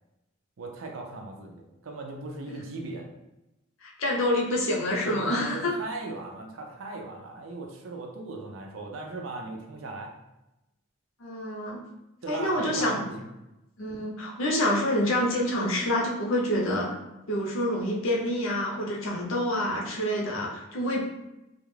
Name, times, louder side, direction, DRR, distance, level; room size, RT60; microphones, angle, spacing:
voice 1, 0.6-3.1 5.0-10.1 12.2-13.3, right 2 dB, 70° right, 2 dB, 0.5 m, -38 dB
voice 2, 3.8-5.7 11.2-11.8 12.3-13.0 13.8-17.0 17.3-21.0, left 1 dB, 75° left, -2 dB, 0.6 m, -27 dB
2.4 x 2.1 x 3.1 m, 0.94 s
head